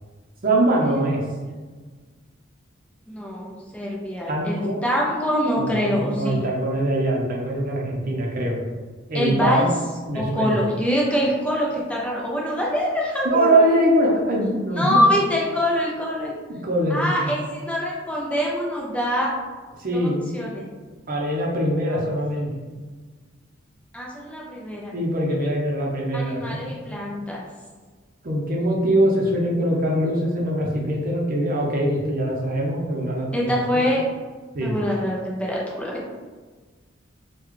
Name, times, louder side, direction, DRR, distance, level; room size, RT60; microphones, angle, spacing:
voice 1, 0.4-1.2 4.3-4.8 5.6-8.6 9.1-9.7 10.1-10.6 13.2-15.1 16.5-17.3 19.8-20.3 21.1-22.5 24.9-26.8 28.2-33.4 33.7-33.8 34.5-34.8, right 1 dB, 45° right, -2 dB, 0.7 m, -23 dB
voice 2, 3.1-6.4 9.1-9.7 10.1-13.6 14.8-16.3 16.9-19.3 19.9-20.6 23.9-24.9 26.1-27.4 33.3-34.0 34.6-35.9, equal, 5° left, -4 dB, 0.4 m, -24 dB
3.8 x 2.3 x 3.1 m, 1.4 s
head